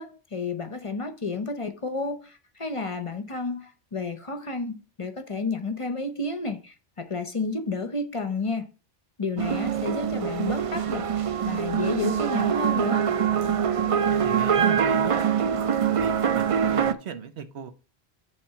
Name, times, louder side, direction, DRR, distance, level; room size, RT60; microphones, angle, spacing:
voice 1, 0.0-8.7 9.2-13.1, left 3 dB, 35° left, 0.6 m, -31 dB
sound 1, 9.4-16.9, right 7 dB, 50° right, 0.4 m, -24 dB
voice 2, 14.1-15.1 15.9-17.7, right 8 dB, 80° right, 1.1 m, -36 dB
8.5 x 3.5 x 5.7 m
omnidirectional pair, 1.1 m